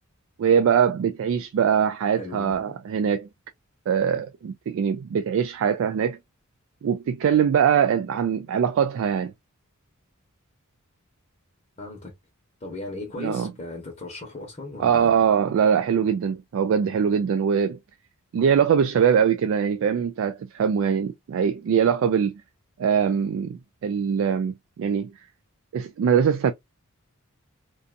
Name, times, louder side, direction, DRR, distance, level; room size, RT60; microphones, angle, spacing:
voice 1, 0.4-3.3 3.9-6.2 6.8-9.3 13.2-13.5 14.8-17.8 18.3-22.3 22.8-25.1 25.7-26.5, right 7 dB, 65° right, 0.3 m, -22 dB
voice 2, 2.2-2.7 11.8-12.1 12.6-15.1, left 2 dB, 30° left, 0.9 m, -37 dB
2.5 x 2.3 x 2.4 m
head